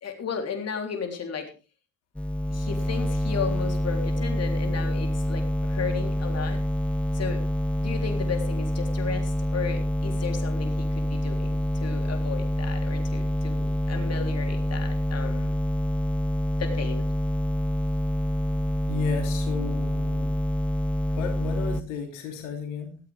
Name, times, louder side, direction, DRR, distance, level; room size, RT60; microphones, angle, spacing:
voice 1, 0.0-1.5 2.5-6.6 7.1-7.4 7.8-15.5 16.6-17.0, left 6 dB, 40° left, 4 dB, 3.6 m, -34 dB
sound 1, 2.1-21.8, equal, 5° left, 0.8 m, -27 dB
voice 2, 18.8-20.3 21.1-23.0, left 7 dB, 75° left, 3 dB, 3.2 m, -34 dB
17.0 x 14.0 x 3.4 m, 0.34 s
hypercardioid pair, 55°, 37 cm